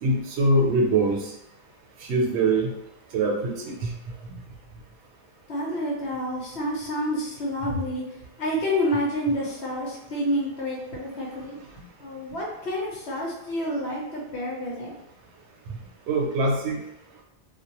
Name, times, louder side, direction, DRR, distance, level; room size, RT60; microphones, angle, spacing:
voice 1, 0.0-1.3 2.0-2.7 3.1-3.9 7.6-7.7 16.1-16.8, right 2 dB, 80° right, 0 dB, 0.9 m, -23 dB
voice 2, 5.5-8.0 8.4-15.0, equal, 75° left, -2 dB, 1.0 m, -29 dB
2.3 x 2.1 x 2.8 m, 0.83 s
omnidirectional pair, 1.1 m